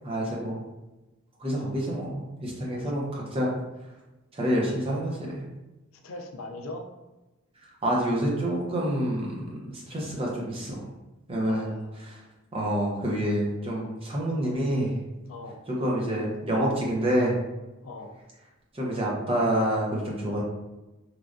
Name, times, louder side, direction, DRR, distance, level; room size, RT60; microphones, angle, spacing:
voice 1, 0.0-0.6 1.4-3.5 4.3-5.4 7.8-10.9 11.3-11.7 12.0-12.2 12.5-14.9 15.7-17.4 18.7-20.4, right 1 dB, 30° right, -3 dB, 0.7 m, -27 dB
voice 2, 5.9-6.8 11.4-12.1 15.2-15.6 17.8-18.1, left 2 dB, 90° left, 4 dB, 0.4 m, -41 dB
3.2 x 2.3 x 2.5 m, 1.1 s
head